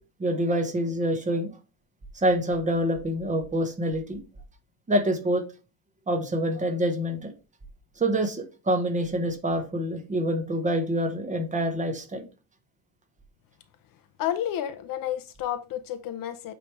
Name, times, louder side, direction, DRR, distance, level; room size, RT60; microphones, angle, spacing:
voice 1, 0.2-1.5 2.1-4.2 4.9-5.5 6.1-7.3 8.0-12.2, equal, 15° right, 1.0 m, -26 dB
voice 2, 14.2-16.5, left 11 dB, 50° left, 0.7 m, -31 dB
8.5 x 3.4 x 4.6 m
cardioid pair, 175°, 44 cm